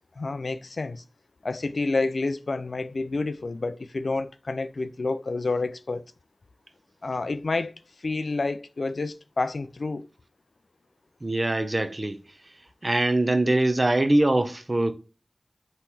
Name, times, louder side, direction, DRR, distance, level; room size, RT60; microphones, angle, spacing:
voice 1, 0.2-1.0 1.4-6.0 7.0-7.7 8.0-10.1, left 3 dB, 90° left, 0.3 m, -29 dB
voice 2, 11.2-12.2 12.8-14.9, right 1 dB, 45° right, 0.6 m, -23 dB
3.8 x 3.1 x 4.1 m
wide cardioid pair, 55°, 0 cm